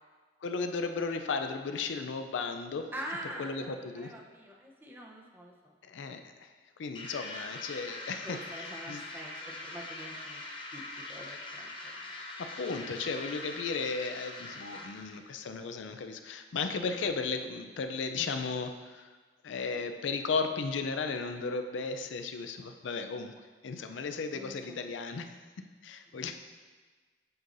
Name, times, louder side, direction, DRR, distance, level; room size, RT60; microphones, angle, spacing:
voice 1, 0.4-2.9 3.4-4.1 5.8-6.5 6.8-9.0 12.4-19.1 19.4-23.3 23.6-25.3 25.8-26.4, left 4 dB, 85° left, 7 dB, 0.4 m, -35 dB
voice 2, 2.9-5.7 8.2-10.4 10.7-10.8 11.1-11.7 24.3-24.8 26.1-26.2, right 1 dB, 10° right, -1 dB, 0.7 m, -44 dB
sound 1, 6.9-15.2, left 2 dB, 30° left, 0.7 m, -43 dB
7.9 x 5.5 x 2.6 m, 1.4 s
head